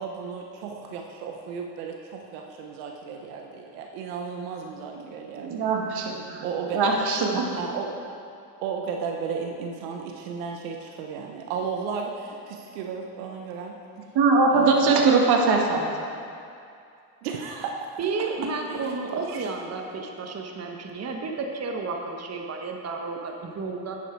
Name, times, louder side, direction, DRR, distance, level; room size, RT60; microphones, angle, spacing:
voice 1, 0.0-5.7 6.4-7.0 7.5-8.0 8.6-13.8 14.5-15.0 17.2-17.9 18.7-19.4, right 5 dB, 85° right, 2 dB, 1.0 m, -34 dB
voice 2, 5.3-6.4 6.7-7.5 14.2-15.9, right 4 dB, 60° right, 0 dB, 1.9 m, -21 dB
voice 3, 18.0-24.0, right 4 dB, 35° right, 2 dB, 1.2 m, -32 dB
10.5 x 8.8 x 4.6 m, 2.5 s
supercardioid pair, 90°, 44 cm